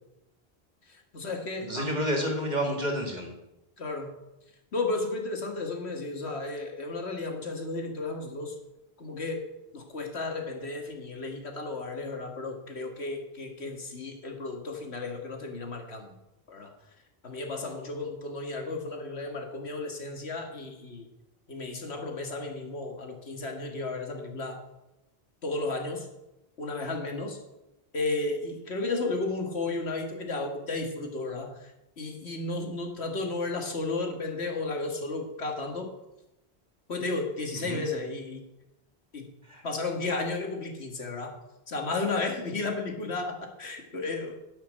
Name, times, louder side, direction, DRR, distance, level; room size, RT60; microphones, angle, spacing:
voice 1, 0.9-2.0 3.8-4.1 4.7-8.6 9.0-9.5 9.7-16.1 16.5-16.7 17.2-21.1 21.5-24.6 25.4-26.1 26.6-27.4 27.9-35.9 36.9-38.4 39.1-39.3 39.6-41.4 41.7-44.4, left 3 dB, 80° left, 3 dB, 2.0 m, -33 dB
voice 2, 1.6-3.3 37.6-37.8 39.5-39.6, equal, 40° right, 2 dB, 2.5 m, -29 dB
11.5 x 5.8 x 8.6 m, 0.93 s
omnidirectional pair, 1.1 m